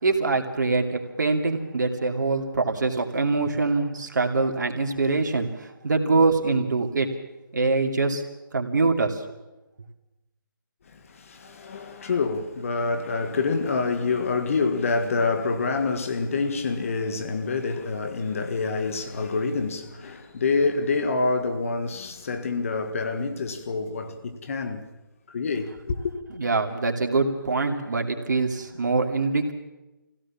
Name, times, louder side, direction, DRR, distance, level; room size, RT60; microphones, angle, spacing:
voice 1, 0.0-7.1 7.5-8.2 8.5-9.2 26.3-29.5, right 3 dB, 60° right, 2.7 m, -24 dB
voice 2, 11.3-24.9 25.3-26.1, left 4 dB, 40° left, 1.7 m, -27 dB
23.5 x 16.5 x 7.4 m
figure-of-eight pair, 160°, 11 cm